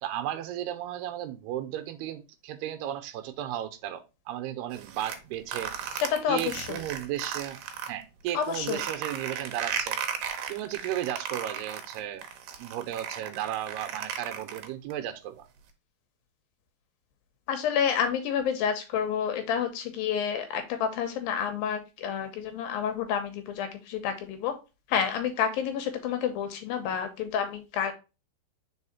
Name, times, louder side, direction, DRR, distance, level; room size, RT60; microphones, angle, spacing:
voice 1, 0.0-5.8 6.3-7.6 7.9-10.0 10.5-12.3 12.6-15.5, right 12 dB, 90° right, 2.7 m, -34 dB
sound 1, 4.7-7.9 8.3-14.9, right 8 dB, 70° right, 2.2 m, -35 dB
voice 2, 6.0-6.8 8.3-8.8 17.5-24.5 24.9-27.9, left 8 dB, 75° left, 2.4 m, -29 dB
4.9 x 4.8 x 4.1 m
omnidirectional pair, 4.7 m